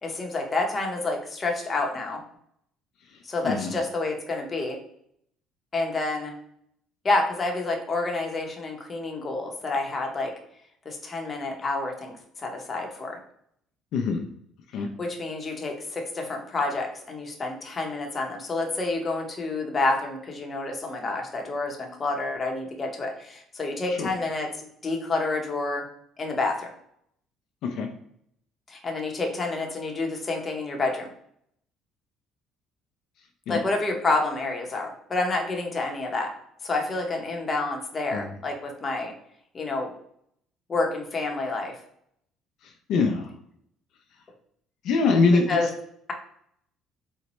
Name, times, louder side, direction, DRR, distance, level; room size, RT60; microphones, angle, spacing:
voice 1, 0.0-2.2 3.2-4.8 5.7-6.3 7.0-10.3 10.8-13.2 15.0-25.8 26.2-26.7 28.7-31.1 33.5-36.3 36.6-39.1 39.5-39.9 40.7-41.8 45.5-45.7, left 3 dB, 30° left, 1 dB, 0.8 m, -28 dB
voice 2, 42.6-43.3 44.8-45.4, left 4 dB, 70° left, 3 dB, 0.4 m, -23 dB
4.0 x 2.1 x 2.9 m, 0.70 s
cardioid pair, 100°, 0 cm